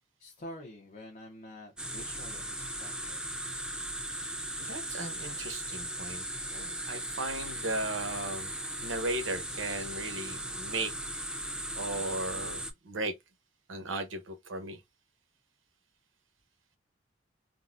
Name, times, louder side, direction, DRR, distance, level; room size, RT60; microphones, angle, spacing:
voice 1, 0.2-3.2, left 1 dB, 40° left, 0.7 m, -47 dB
sound 1, 1.8-12.7, right 1 dB, 5° right, 0.4 m, -38 dB
voice 2, 4.6-6.2 6.5-8.5 8.8-10.9 11.7-13.1 13.7-14.8, right 2 dB, 90° right, 0.9 m, -36 dB
3.8 x 2.0 x 2.4 m
head